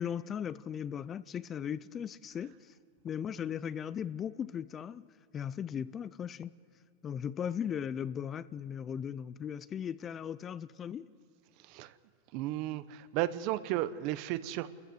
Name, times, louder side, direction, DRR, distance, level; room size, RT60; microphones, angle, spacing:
voice 1, 0.0-2.7 3.0-5.1 5.3-6.5 7.0-11.1, left 8 dB, 20° left, 0.4 m, -37 dB
voice 2, 11.6-11.9 12.3-14.7, right 14 dB, 45° right, 0.9 m, -34 dB
28.5 x 14.5 x 8.0 m
supercardioid pair, 150°, 0 cm